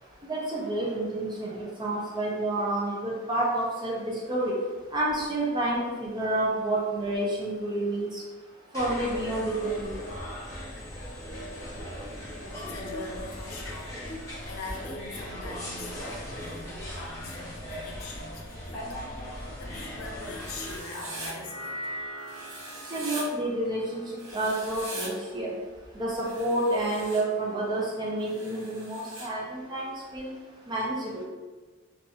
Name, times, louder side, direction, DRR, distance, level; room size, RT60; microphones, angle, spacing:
voice 1, 0.3-4.5 4.9-8.2 8.7-10.0 22.9-25.5 26.0-30.3 30.7-31.2, right 1 dB, 20° right, -4 dB, 0.4 m, -29 dB
sound 1, 8.7-20.8, left 1 dB, 15° left, 0.7 m, -38 dB
voice 2, 12.5-19.0 19.3-21.7, left 3 dB, 75° left, 0 dB, 0.5 m, -42 dB
sound 2, 19.7-26.0, equal, 35° left, 1.0 m, -43 dB
Writing, 20.3-21.3 22.3-23.2 24.2-25.1 26.2-27.2 28.2-29.3, right 2 dB, 75° right, 0.7 m, -41 dB
2.8 x 2.3 x 2.4 m, 1.3 s
head